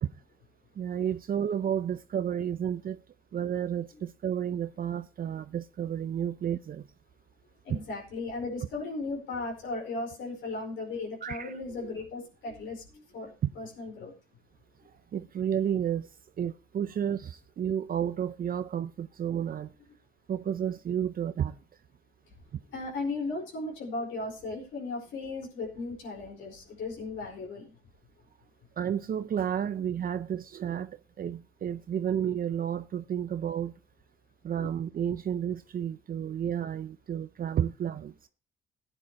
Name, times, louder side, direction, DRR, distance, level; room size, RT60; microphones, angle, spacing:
voice 1, 0.8-3.0 3.3-6.9 11.2-11.5 13.4-13.5 15.1-16.1 16.4-19.7 20.3-21.6 28.8-33.7 34.4-38.1, right 9 dB, 45° right, 0.6 m, -31 dB
voice 2, 7.6-14.1 22.7-27.7 34.6-34.7, left 3 dB, 75° left, 4.8 m, -36 dB
15.5 x 9.9 x 3.0 m
cardioid pair, 90°, 20 cm